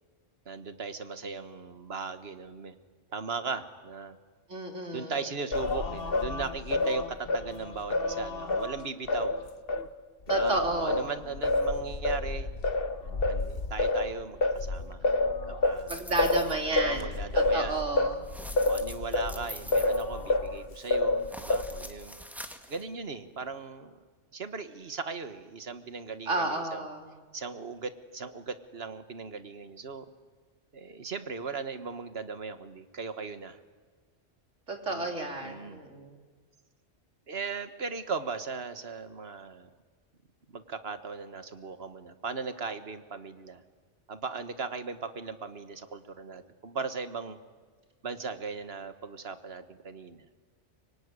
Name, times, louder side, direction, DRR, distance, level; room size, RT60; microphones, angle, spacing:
voice 1, 0.4-2.7 3.1-4.2 4.9-9.4 10.3-12.5 13.0-16.1 16.8-17.8 18.6-22.2 22.7-24.0 24.3-26.8 27.3-30.0 30.7-33.6 34.9-35.1 35.4-35.8 37.3-39.7 40.5-43.6 44.1-47.4 48.0-50.3, right 4 dB, 55° right, 10 dB, 1.7 m, -38 dB
voice 2, 4.5-5.2 10.3-11.1 15.9-18.2 26.3-27.0 34.7-36.2, right 2 dB, 85° right, 3 dB, 3.5 m, -32 dB
Singing, 5.5-9.9 10.3-20.6 20.9-21.9, left 2 dB, 50° left, 1.3 m, -29 dB
sound 1, 15.9-16.6 18.2-20.7 21.2-22.8, equal, ahead, 1.7 m, -45 dB
24.5 x 23.5 x 9.8 m, 1.5 s
omnidirectional pair, 1.2 m